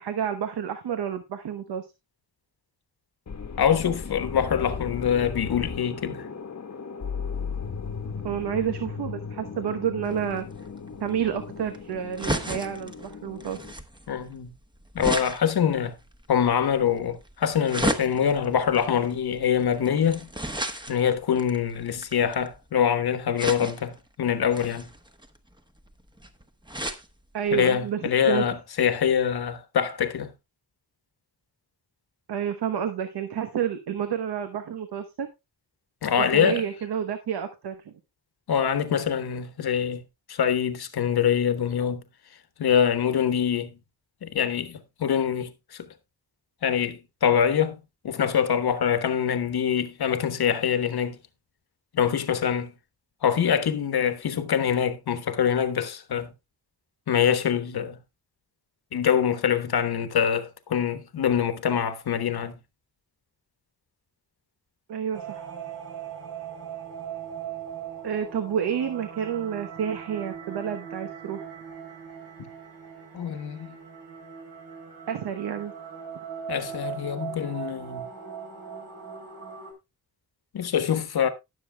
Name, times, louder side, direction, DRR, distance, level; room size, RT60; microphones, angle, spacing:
voice 1, 0.0-1.9 8.2-10.5 11.0-13.6 27.3-28.4 32.3-35.3 36.2-37.9 64.9-65.5 68.0-71.5 75.1-75.7, right 8 dB, 90° right, 1.0 m, -29 dB
sound 1, 3.3-13.7, left 5 dB, 45° left, 1.1 m, -36 dB
voice 2, 3.6-6.3 14.1-14.5 14.9-16.0 16.3-20.3 20.9-24.9 27.5-30.3 36.0-36.6 38.5-40.0 40.3-42.0 42.6-43.7 44.2-45.9 46.6-47.8 48.0-51.2 51.9-52.7 53.2-56.3 57.1-58.0 58.9-62.6 72.4-72.5 73.1-73.7 76.5-78.1 80.5-81.3, left 8 dB, 75° left, 1.2 m, -24 dB
sound 2, 10.0-22.7 23.4-24.0 24.5-27.1 27.5-27.6 27.8-27.9, right 1 dB, 10° right, 1.0 m, -34 dB
sound 3, 65.1-79.7, right 7 dB, 65° right, 3.7 m, -39 dB
18.5 x 6.9 x 2.2 m
wide cardioid pair, 100°, 38 cm